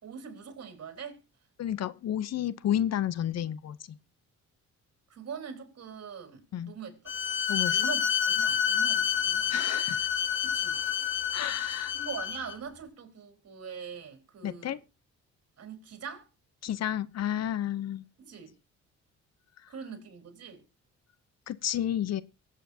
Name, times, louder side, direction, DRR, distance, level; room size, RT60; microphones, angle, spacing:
voice 1, 0.0-1.2 5.1-7.1 7.5-9.5 10.4-10.8 11.9-14.8 15.6-16.3 18.2-18.6 19.7-20.6, right 6 dB, 55° right, 4.1 m, -43 dB
voice 2, 1.6-4.0 6.5-6.7 7.5-7.8 9.5-10.1 11.3-11.9 14.4-14.8 16.6-18.0 21.5-22.2, left 11 dB, 60° left, 0.7 m, -31 dB
Bowed string instrument, 7.1-12.6, left 8 dB, 40° left, 1.6 m, -28 dB
23.5 x 8.3 x 2.8 m
cardioid pair, 90°, 30 cm